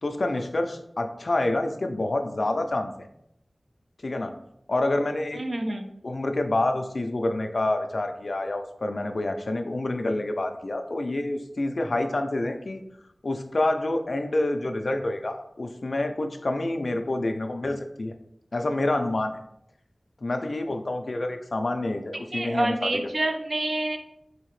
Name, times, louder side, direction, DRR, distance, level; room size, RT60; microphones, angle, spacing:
voice 1, 0.0-3.1 4.0-4.3 4.7-5.4 6.0-12.8 13.2-18.1 18.5-19.4 20.2-23.0, left 2 dB, 65° left, 6 dB, 0.3 m, -27 dB
voice 2, 5.3-5.9 22.3-24.0, right 1 dB, 65° right, 4 dB, 0.5 m, -27 dB
4.0 x 2.7 x 3.0 m, 0.77 s
wide cardioid pair, 50°, 0 cm